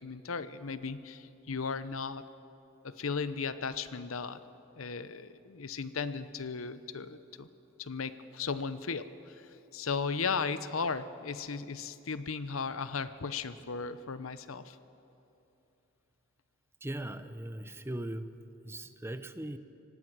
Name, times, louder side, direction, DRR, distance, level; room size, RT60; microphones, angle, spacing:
voice 1, 0.0-2.2 2.8-4.4 4.8-7.5 7.8-14.8, left 5 dB, 90° left, 13 dB, 0.8 m, -36 dB
voice 2, 16.8-18.4 18.6-19.6, right 1 dB, 10° right, 11 dB, 0.7 m, -39 dB
25.0 x 18.5 x 6.2 m, 2.8 s
head